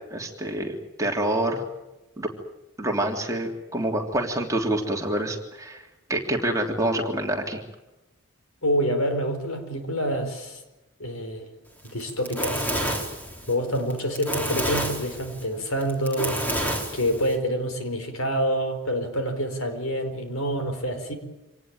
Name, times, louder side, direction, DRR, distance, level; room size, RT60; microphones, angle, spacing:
voice 1, 0.1-1.6 2.2-2.3 2.8-5.8 6.1-7.6, right 1 dB, 15° right, 1 dB, 3.1 m, -27 dB
voice 2, 8.6-10.6 11.0-11.5 11.8-12.8 13.5-16.4 16.9-21.1, equal, 75° left, 7 dB, 4.6 m, -27 dB
Fire, 11.9-17.4, right 1 dB, 10° left, 3.6 m, -29 dB
26.5 x 19.0 x 9.1 m, 0.99 s
head